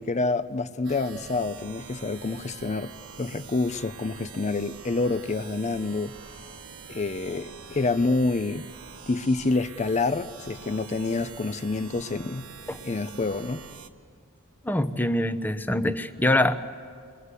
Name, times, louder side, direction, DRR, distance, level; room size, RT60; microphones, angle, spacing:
voice 1, 0.0-6.1 6.9-8.7 9.1-12.5 12.8-13.6, left 3 dB, 30° left, 0.6 m, -27 dB
sound 1, 0.8-13.9, right 5 dB, 70° right, 1.6 m, -45 dB
voice 2, 14.6-16.7, left 1 dB, 10° left, 0.8 m, -24 dB
30.0 x 22.5 x 8.3 m
head